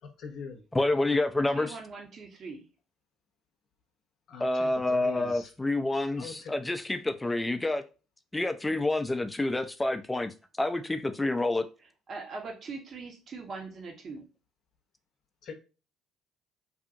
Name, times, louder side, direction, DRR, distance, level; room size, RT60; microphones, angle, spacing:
voice 1, 0.2-0.6 4.3-5.4 6.2-6.3 15.4-15.5, left 5 dB, 60° left, 0.6 m, -42 dB
voice 2, 0.7-1.8 4.4-7.8 8.3-11.6, left 2 dB, 15° left, 0.4 m, -28 dB
voice 3, 1.5-2.6 12.1-14.3, right 4 dB, 50° right, 0.9 m, -41 dB
2.7 x 2.6 x 2.5 m
hypercardioid pair, 60°, 0 cm